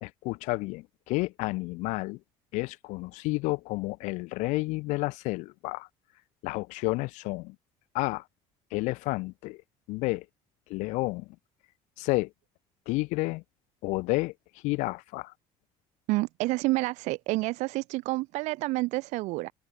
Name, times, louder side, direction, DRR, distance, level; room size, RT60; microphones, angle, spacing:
voice 1, 0.0-2.2 2.5-5.9 6.4-7.6 7.9-8.2 8.7-9.6 9.9-10.2 10.7-11.3 12.0-12.3 12.9-13.4 13.8-14.3 14.6-15.3, left 23 dB, 75° left, 1.8 m, -30 dB
voice 2, 16.1-19.5, right 21 dB, 70° right, 2.0 m, -29 dB
open air
cardioid pair, 170°, 12 cm